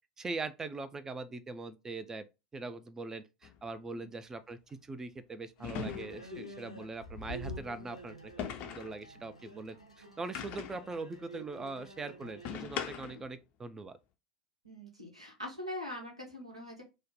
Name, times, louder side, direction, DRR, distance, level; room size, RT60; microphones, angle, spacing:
voice 1, 0.2-2.3 2.5-14.0, right 3 dB, 15° right, 0.4 m, -42 dB
sound 1, 3.4-3.6 5.6-6.4 8.4-9.0 10.3-10.9 12.4-13.3, left 8 dB, 40° left, 0.4 m, -40 dB
sound 2, 5.6-12.5, equal, 85° left, 0.6 m, -47 dB
voice 2, 14.6-16.8, left 1 dB, 90° right, 1.0 m, -42 dB
3.2 x 2.1 x 3.8 m
figure-of-eight pair, 80°, 3 cm